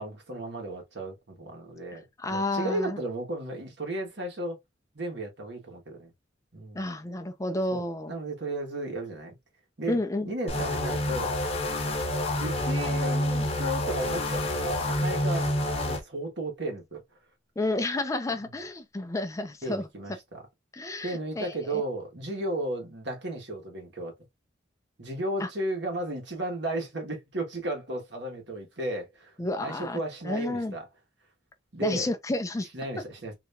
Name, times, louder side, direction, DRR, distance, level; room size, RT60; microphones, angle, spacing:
voice 1, 0.0-4.6 4.9-6.1 6.5-6.8 7.7-7.8 8.1-9.3 9.8-10.0 10.2-11.3 12.3-15.5 15.8-17.0 19.6-20.4 21.0-24.1 25.0-29.3 29.6-30.9 31.7-32.1 32.7-33.3, right 1 dB, 65° right, 1.4 m, -34 dB
voice 2, 1.9-3.0 6.7-8.1 9.9-10.3 17.6-19.9 20.7-21.8 25.4-25.5 29.4-30.0 30.2-30.7 31.8-32.7, left 2 dB, 15° left, 0.4 m, -31 dB
sound 1, 10.5-16.0, left 1 dB, 30° left, 0.8 m, -28 dB
3.3 x 2.9 x 2.6 m
head